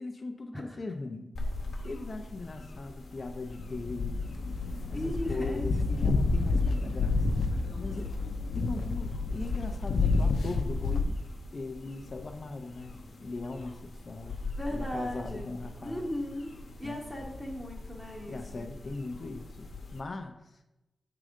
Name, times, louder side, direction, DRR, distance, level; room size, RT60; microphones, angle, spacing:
voice 1, 0.0-1.4 1.8-4.3 4.9-8.1 8.5-11.2 11.5-14.4 14.7-16.1 16.8-17.0 18.3-20.6, left 3 dB, 40° left, 5 dB, 0.5 m, -39 dB
sound 1, 1.4-20.0, left 2 dB, 70° left, 0.9 m, -44 dB
sound 2, 3.5-11.0, left 3 dB, 90° left, 0.6 m, -29 dB
voice 2, 4.9-5.7 14.6-16.5 16.8-18.7, left 1 dB, 5° right, -1 dB, 0.8 m, -37 dB
7.6 x 3.7 x 5.0 m, 0.95 s
wide cardioid pair, 150°, 0 cm